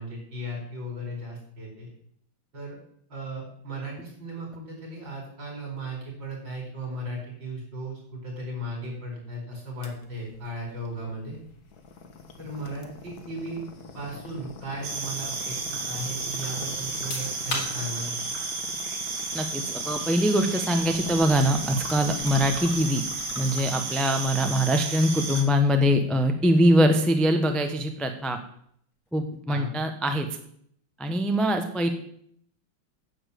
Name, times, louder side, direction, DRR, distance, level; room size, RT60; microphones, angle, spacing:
voice 1, 0.0-1.9 2.5-2.8 3.1-11.4 12.4-13.6 13.9-18.3 29.5-29.8, right 1 dB, 60° right, 0 dB, 5.5 m, -36 dB
sound 1, 9.8-26.1, left 4 dB, 50° left, 1.8 m, -44 dB
sound 2, 14.8-25.4, right 4 dB, 85° right, 2.7 m, -33 dB
sound 3, 16.9-29.5, left 2 dB, 80° left, 3.9 m, -45 dB
voice 2, 19.3-23.0 23.4-28.4 29.1-30.3 31.0-31.9, equal, ahead, 5 dB, 0.7 m, -23 dB
9.9 x 7.4 x 8.4 m, 0.66 s
omnidirectional pair, 2.3 m